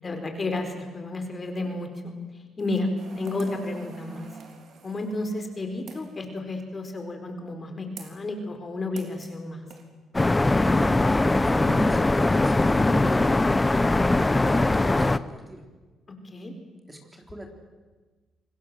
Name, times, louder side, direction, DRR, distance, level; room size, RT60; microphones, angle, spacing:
voice 1, 0.0-2.1 2.6-2.9 3.2-4.3 4.8-9.6 16.2-16.5, left 2 dB, 30° left, 5 dB, 4.5 m, -32 dB
sound 1, 3.0-6.2 8.0-8.2 9.0-9.4 9.7-9.8, right 5 dB, 65° right, 3.6 m, -46 dB
sound 2, 10.1-15.2, left 2 dB, 15° left, 0.8 m, -21 dB
voice 2, 10.7-15.6 16.3-16.6 16.9-17.5, right 1 dB, 15° right, 3 dB, 3.8 m, -38 dB
27.0 x 20.5 x 7.7 m, 1.3 s
cardioid pair, 90°, 0 cm